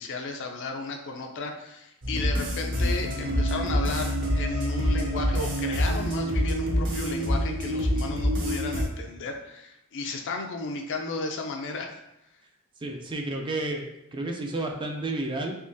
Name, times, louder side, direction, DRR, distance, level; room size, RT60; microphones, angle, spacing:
voice 1, 0.0-12.0, left 3 dB, 60° left, 3 dB, 0.5 m, -34 dB
sound 1, 2.0-8.8, equal, 55° right, 0.9 m, -26 dB
voice 2, 12.8-15.6, right 2 dB, 20° right, 3 dB, 0.3 m, -31 dB
3.6 x 2.9 x 2.6 m, 0.84 s
head